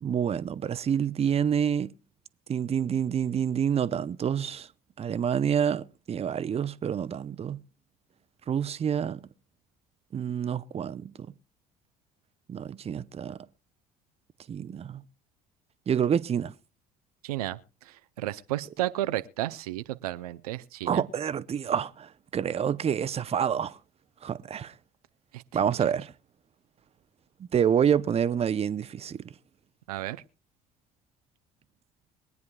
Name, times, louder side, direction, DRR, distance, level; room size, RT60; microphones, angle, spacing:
voice 1, 0.0-1.9 2.5-4.7 5.0-7.6 8.5-9.2 10.1-11.1 12.5-13.4 14.5-15.0 15.9-16.5 20.9-23.8 24.2-24.7 25.5-26.1 27.4-29.2, right 8 dB, 35° right, 0.6 m, -28 dB
voice 2, 17.2-17.6 17.9-21.0 25.3-25.7 29.9-30.2, right 15 dB, 85° right, 0.5 m, -33 dB
23.0 x 9.4 x 2.3 m
hypercardioid pair, 60°, 19 cm